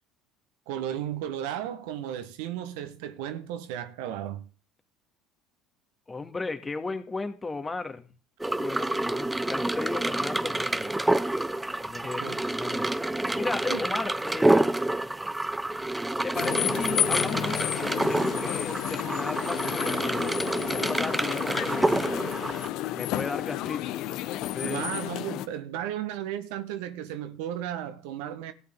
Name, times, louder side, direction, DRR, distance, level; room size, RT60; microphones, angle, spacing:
voice 1, 0.7-4.4 12.2-12.4 13.7-13.8 24.6-28.5, right 11 dB, 70° right, 1.5 m, -34 dB
voice 2, 6.1-8.1 8.4-10.9 11.8-12.9 13.4-14.8 16.2-20.3 20.7-22.2 22.9-23.9 24.4-24.9, left 3 dB, 20° left, 2.3 m, -35 dB
sound 1, 8.4-22.7, right 1 dB, 10° right, 0.8 m, -28 dB
sound 2, 16.3-25.5, left 14 dB, 60° left, 1.0 m, -31 dB
16.5 x 9.4 x 4.0 m
hypercardioid pair, 65°, 0 cm